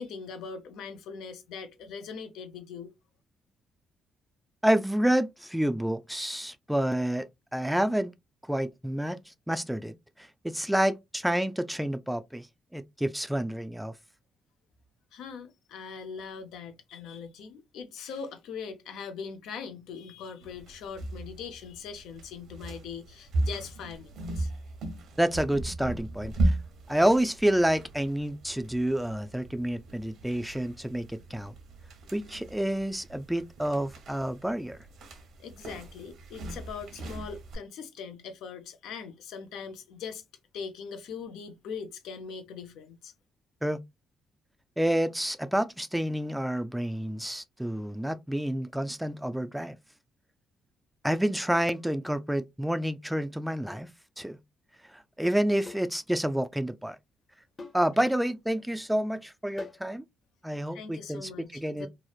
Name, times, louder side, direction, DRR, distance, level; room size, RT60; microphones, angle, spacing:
voice 1, 0.0-2.9 15.1-24.5 35.4-40.2 40.5-43.1 60.7-61.9, left 6 dB, 85° left, 0.5 m, -41 dB
voice 2, 4.6-7.3 7.5-8.1 8.5-9.2 9.5-12.5 12.7-13.9 25.2-26.6 26.9-31.5 32.1-34.8 43.6-43.8 44.8-49.8 51.0-53.9 54.2-54.4 54.9-57.0 57.7-60.0 60.4-61.9, right 1 dB, 5° right, 0.3 m, -29 dB
sound 1, 20.4-37.6, right 2 dB, 75° right, 0.8 m, -36 dB
sound 2, 51.7-51.9 53.7-53.9 55.7-56.0 56.3-56.4 57.6-57.9 59.6-59.9, left 3 dB, 30° left, 0.8 m, -45 dB
2.9 x 2.0 x 2.3 m
cardioid pair, 90°, 0 cm